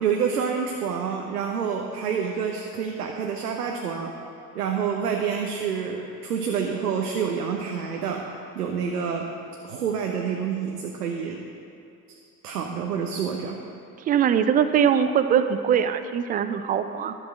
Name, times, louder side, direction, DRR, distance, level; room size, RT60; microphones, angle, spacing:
voice 1, 0.0-4.1 4.5-8.2 8.5-9.3 9.6-11.5 12.1-12.2 12.4-13.6, right 6 dB, 75° right, 2 dB, 0.9 m, -28 dB
voice 2, 14.1-17.2, right 8 dB, 20° right, 10 dB, 0.3 m, -22 dB
11.0 x 7.7 x 6.3 m, 2.6 s
figure-of-eight pair, 65°, 47 cm